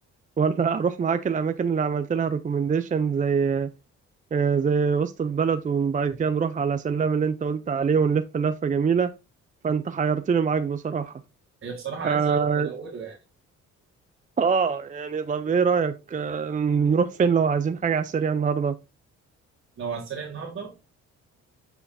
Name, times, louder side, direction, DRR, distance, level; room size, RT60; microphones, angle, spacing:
voice 1, 0.4-3.7 4.3-9.1 9.6-11.2 12.0-12.7 14.4-18.7, right 6 dB, 25° right, 0.5 m, -24 dB
voice 2, 11.6-13.2 19.8-20.7, right 5 dB, 45° right, 1.9 m, -34 dB
8.0 x 5.8 x 2.7 m
cardioid pair, 90°, 30 cm